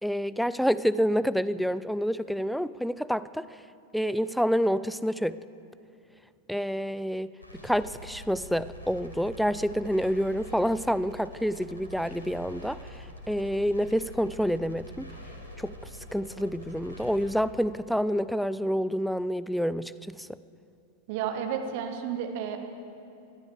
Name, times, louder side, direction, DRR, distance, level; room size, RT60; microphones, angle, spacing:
voice 1, 0.0-3.5 3.9-5.4 6.5-7.3 7.6-12.8 13.3-15.1 15.6-15.7 16.1-20.3, equal, ahead, 17 dB, 0.3 m, -28 dB
sound 1, 7.4-17.3, equal, 80° left, 2.0 m, -45 dB
voice 2, 21.1-22.6, right 8 dB, 50° right, 6 dB, 1.3 m, -31 dB
20.5 x 12.0 x 4.8 m, 2.6 s
figure-of-eight pair, 90°, 0 cm